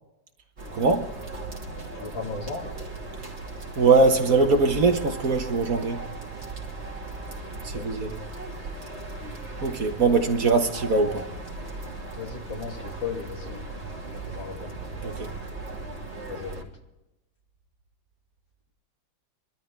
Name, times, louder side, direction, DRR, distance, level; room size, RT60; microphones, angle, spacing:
sound 1, 0.6-16.6, right 3 dB, 35° right, 3.0 m, -37 dB
voice 1, 0.7-1.1 3.8-6.0 7.6-8.2 9.6-11.2 15.0-15.3, right 3 dB, 50° right, 1.7 m, -21 dB
voice 2, 2.0-2.7 7.7-7.8 12.1-13.7 14.1-14.7 16.3-16.5, left 5 dB, 70° left, 3.4 m, -35 dB
24.0 x 13.0 x 3.5 m
omnidirectional pair, 2.1 m